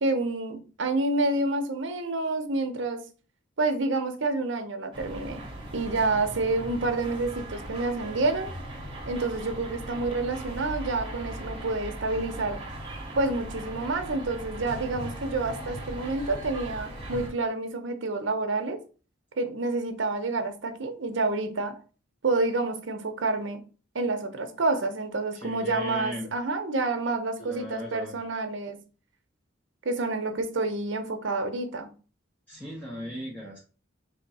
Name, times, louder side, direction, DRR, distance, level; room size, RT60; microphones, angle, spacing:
voice 1, 0.0-3.0 3.6-5.4 5.7-8.5 9.1-12.6 13.2-18.8 19.4-21.8 22.2-23.6 23.9-28.8 29.8-31.9, right 2 dB, 65° right, 0.7 m, -28 dB
sound 1, 4.9-17.3, right 1 dB, 25° right, 1.2 m, -38 dB
voice 2, 25.3-26.3 27.4-28.2 32.5-33.6, equal, 5° left, 0.9 m, -37 dB
3.6 x 2.6 x 4.1 m
head